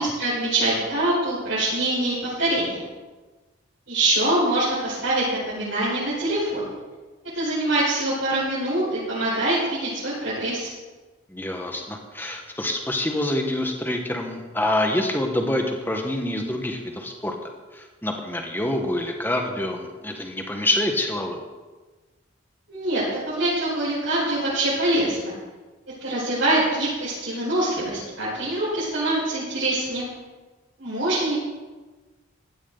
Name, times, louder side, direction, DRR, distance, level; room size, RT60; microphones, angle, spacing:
voice 1, 0.0-2.8 3.9-6.8 7.3-10.7 22.7-25.3 26.0-30.1 30.8-31.4, right 1 dB, 65° right, -10 dB, 5.3 m, -24 dB
voice 2, 11.3-17.3 17.7-21.4, left 1 dB, 10° left, 3 dB, 1.3 m, -26 dB
16.0 x 12.5 x 4.0 m, 1.3 s
head